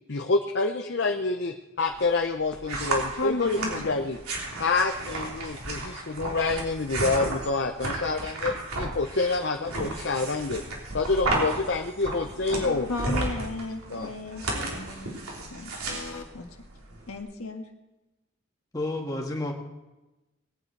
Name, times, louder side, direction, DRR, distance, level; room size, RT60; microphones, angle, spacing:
voice 1, 0.1-4.2 4.6-10.6 10.9-12.9 13.9-14.1, left 3 dB, 55° left, 3 dB, 0.7 m, -27 dB
sound 1, 1.9-17.2, right 2 dB, 90° right, 3.4 m, -33 dB
voice 2, 3.2-4.0 12.9-15.2 15.5-16.5 17.1-17.7, left 2 dB, 85° left, 4 dB, 1.6 m, -35 dB
voice 3, 18.7-19.5, left 2 dB, 15° left, 0 dB, 1.8 m, -30 dB
20.0 x 9.6 x 4.7 m, 1.0 s
head